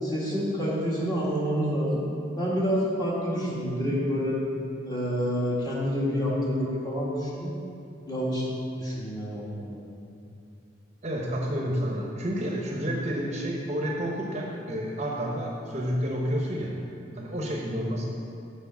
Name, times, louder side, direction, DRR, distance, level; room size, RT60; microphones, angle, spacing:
voice 1, 0.0-2.0 2.4-4.4 4.9-7.5 8.1-8.4 8.8-9.8, equal, 25° left, -7 dB, 1.9 m, -28 dB
voice 2, 11.0-16.7 17.2-18.1, equal, 35° right, -1 dB, 0.9 m, -30 dB
7.1 x 4.9 x 6.9 m, 2.6 s
head